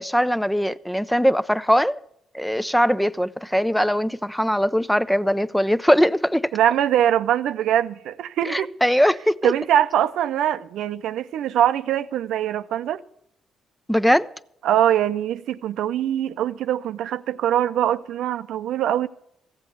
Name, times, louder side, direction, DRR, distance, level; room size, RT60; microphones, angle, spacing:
voice 1, 0.0-2.0 2.3-6.5 8.4-9.5 13.9-14.3, equal, 5° left, 0.4 m, -21 dB
voice 2, 6.5-8.7 9.4-13.0 14.6-19.1, right 11 dB, 80° right, 0.5 m, -22 dB
14.5 x 7.9 x 8.1 m
cardioid pair, 90°, 0 cm